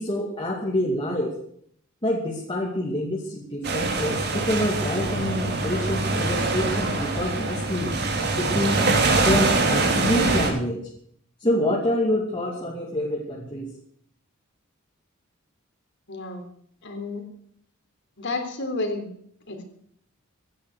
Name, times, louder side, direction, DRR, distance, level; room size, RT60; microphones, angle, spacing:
voice 1, 0.0-1.4 2.0-8.0 8.4-8.9 9.2-10.8 11.4-13.7, left 1 dB, 25° left, -3 dB, 2.6 m, -26 dB
sound 1, 3.6-10.5, right 3 dB, 50° right, 3.7 m, -24 dB
voice 2, 16.1-16.4 16.8-17.2 18.2-19.1 19.5-19.6, left 2 dB, 60° left, 5 dB, 3.6 m, -30 dB
16.5 x 10.5 x 6.6 m, 0.65 s
head